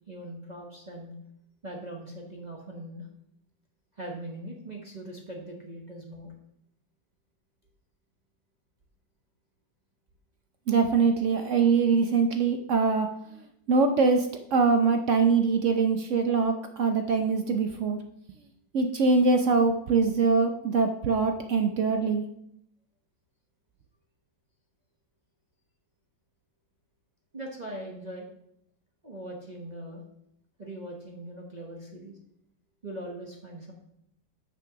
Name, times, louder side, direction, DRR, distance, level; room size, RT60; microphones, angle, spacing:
voice 1, 0.1-1.2 1.6-3.1 3.9-6.3 27.3-28.3 29.0-30.0 30.6-32.2 32.8-33.7, right 1 dB, 30° right, -1 dB, 0.8 m, -40 dB
voice 2, 10.7-13.1 13.7-18.0 18.7-22.2, right 4 dB, 70° right, 6 dB, 0.7 m, -23 dB
6.8 x 6.1 x 5.8 m, 0.75 s
omnidirectional pair, 2.0 m